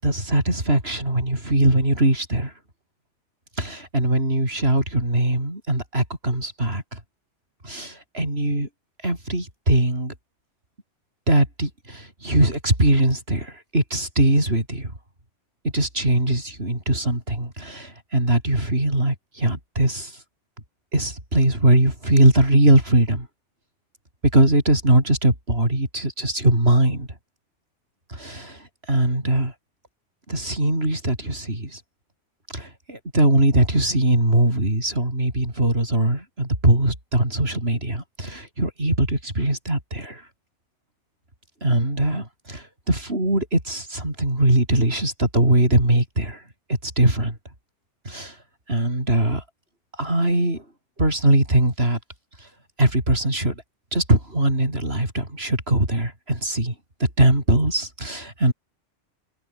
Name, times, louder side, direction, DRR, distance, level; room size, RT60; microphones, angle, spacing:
voice 1, 0.0-2.5 3.6-7.0 7.6-8.7 9.0-10.1 11.3-14.9 15.7-20.1 20.9-23.3 24.3-27.1 28.1-29.5 30.3-31.8 32.5-40.2 41.6-46.4 46.8-47.4 48.1-48.3 48.7-49.4 50.0-50.6 51.0-52.0 52.8-53.5 53.9-56.7 57.2-58.5, right 1 dB, 55° right, 7.5 m, -21 dB
omnidirectional pair, 1.2 m